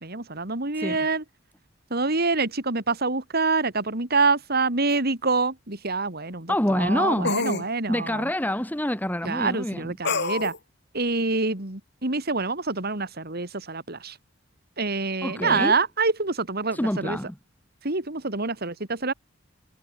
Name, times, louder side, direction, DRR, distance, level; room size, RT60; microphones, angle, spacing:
voice 1, 0.0-1.2 1.9-8.2 9.2-10.5 10.9-14.1 14.8-17.2 17.8-19.1, right 3 dB, 55° right, 3.3 m, -26 dB
sound 1, 4.9-5.0 7.2-7.7 10.0-10.6, left 3 dB, 60° left, 6.9 m, -26 dB
voice 2, 6.5-7.4 7.9-9.9 15.2-15.8 16.7-17.4, left 1 dB, 10° left, 1.7 m, -26 dB
head